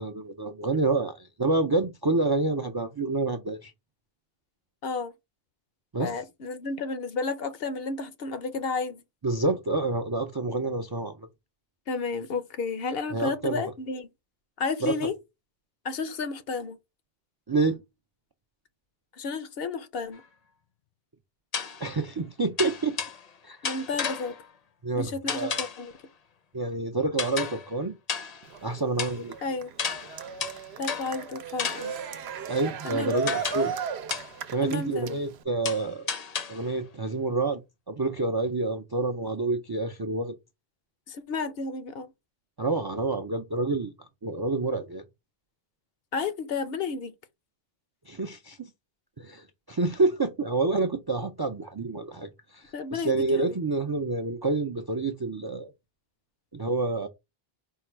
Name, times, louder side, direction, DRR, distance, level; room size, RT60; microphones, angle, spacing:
voice 1, 0.0-3.7 5.9-6.1 9.2-11.3 13.1-13.7 14.8-14.9 17.5-17.8 21.8-23.0 23.4-23.6 24.8-25.7 26.5-28.0 28.6-29.3 32.5-33.7 34.5-36.1 36.5-37.6 37.9-40.3 42.6-43.9 44.2-45.0 48.1-48.7 49.2-52.6 52.9-55.7 56.5-57.1, right 3 dB, 40° right, 0.3 m, -28 dB
voice 2, 4.8-5.1 6.0-9.0 11.9-14.1 14.6-15.1 15.8-16.8 19.2-20.2 23.6-24.3 25.0-25.9 29.4-29.7 30.8-31.9 32.8-33.4 34.6-35.2 41.1-42.1 46.1-47.1 52.7-53.6, left 4 dB, 70° left, 0.9 m, -32 dB
sound 1, 20.1-20.2 21.5-21.9 22.6-23.3 23.6-24.5 25.3-25.9 27.2-27.7 28.1-28.6 29.0-29.2 29.8-31.2 31.6-32.1 33.3-33.8 34.1-34.4 35.7-36.7, left 6 dB, 45° left, 0.6 m, -33 dB
Cheering, 28.4-35.4, right 7 dB, 85° right, 0.8 m, -36 dB
4.5 x 2.2 x 4.4 m
omnidirectional pair, 1.0 m